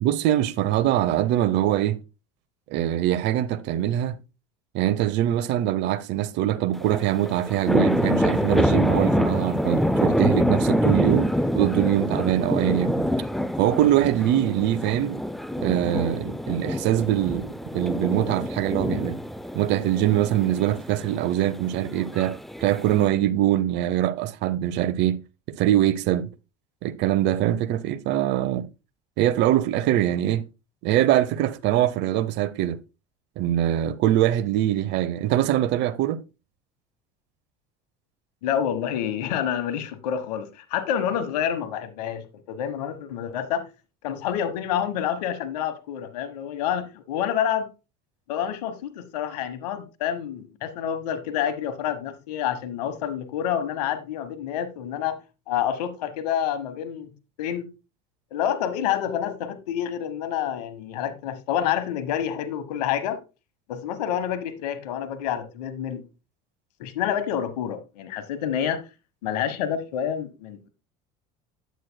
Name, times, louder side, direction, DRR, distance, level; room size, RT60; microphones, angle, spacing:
voice 1, 0.0-2.0 2.7-4.2 4.7-13.1 13.6-15.2 15.6-19.2 19.5-25.2 25.5-26.3 26.8-28.7 29.2-30.5 30.8-32.8 33.4-36.2, right 12 dB, 60° right, 0.8 m, -23 dB
sound 1, 6.7-23.1, equal, ahead, 0.4 m, -26 dB
voice 2, 38.4-43.6 44.0-47.7 48.3-55.2 55.5-57.1 57.4-57.7 58.3-63.2 63.7-66.1 66.8-68.8 69.2-70.7, left 9 dB, 85° left, 1.2 m, -28 dB
9.2 x 8.3 x 2.2 m
supercardioid pair, 95°, 20 cm